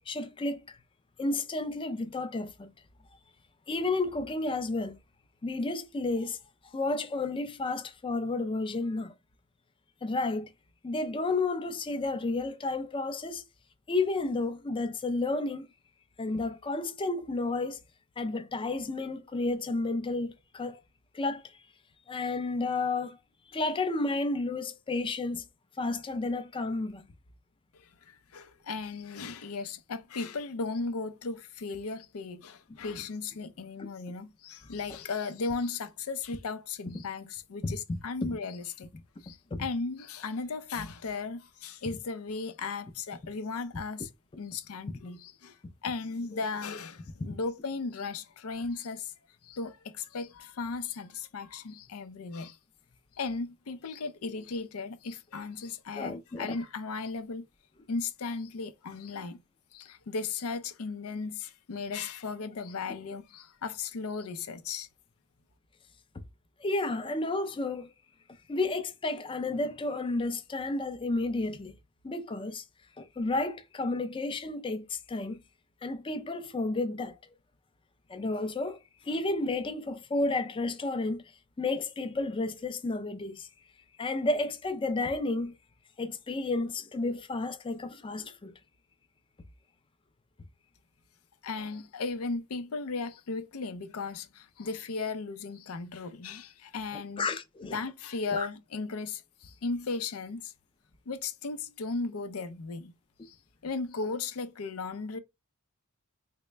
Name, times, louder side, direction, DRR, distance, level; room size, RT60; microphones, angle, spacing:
voice 1, 0.1-0.8 1.2-2.7 3.7-5.0 5.4-6.4 6.6-9.1 10.0-10.5 10.8-13.4 13.9-15.7 16.2-17.8 18.2-20.8 21.1-21.4 22.1-23.2 23.5-25.4 25.8-27.1 33.8-33.9 37.6-38.3 39.5-39.6 46.3-46.4 56.0-56.6 66.6-67.9 68.5-71.7 72.0-72.6 73.0-75.4 75.8-77.3 78.1-81.2 81.6-83.5 84.0-85.5 86.0-88.5 97.2-97.8 98.3-98.5, left 2 dB, 25° left, 0.4 m, -31 dB
voice 2, 27.7-38.9 39.2-44.1 44.4-49.1 49.4-52.6 53.1-57.4 57.9-59.4 59.7-64.9 91.4-97.3 97.7-100.5 101.1-102.9 103.2-103.4 103.6-105.2, left 4 dB, 75° left, 0.5 m, -36 dB
3.9 x 2.1 x 3.2 m
head